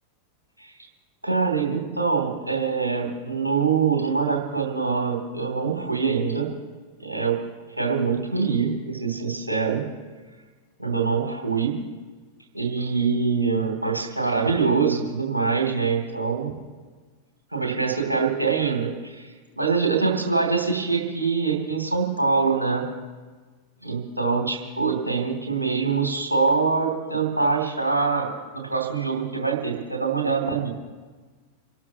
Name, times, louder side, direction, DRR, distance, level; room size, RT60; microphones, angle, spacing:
voice 1, 1.2-6.5 7.0-7.4 7.8-9.8 10.8-11.7 12.5-16.5 17.5-19.3 19.6-22.9 23.8-30.7, right 5 dB, 85° right, 1 dB, 3.0 m, -24 dB
28.5 x 12.5 x 3.0 m, 1.4 s
figure-of-eight pair, 90°, 0 cm